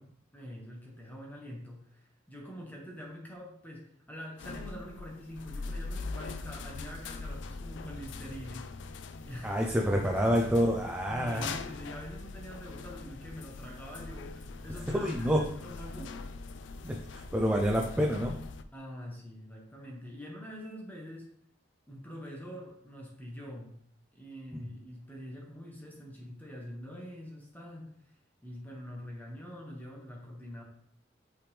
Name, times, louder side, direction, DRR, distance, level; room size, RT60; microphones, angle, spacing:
voice 1, 0.3-8.7 9.2-9.8 11.1-16.2 18.7-21.3 21.9-23.8 24.1-28.0 28.4-30.6, equal, 10° left, -1 dB, 1.0 m, -45 dB
sound 1, 4.4-18.6, left 3 dB, 65° left, 0.4 m, -42 dB
voice 2, 9.4-11.5 14.9-15.4 16.8-18.4 24.5-24.6, equal, 10° right, -1 dB, 0.5 m, -28 dB
8.8 x 3.4 x 3.3 m, 0.62 s
head